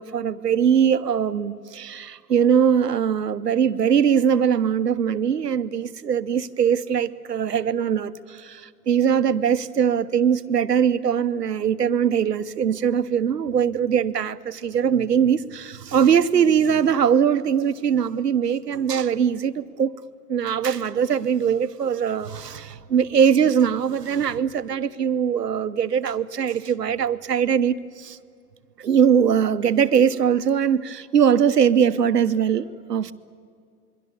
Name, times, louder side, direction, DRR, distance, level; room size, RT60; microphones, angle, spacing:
voice 1, 0.0-19.9 20.3-28.2 28.8-33.1, right 8 dB, 80° right, 14 dB, 1.0 m, -21 dB
27.0 x 23.0 x 7.1 m, 2.2 s
figure-of-eight pair, 100°, 47 cm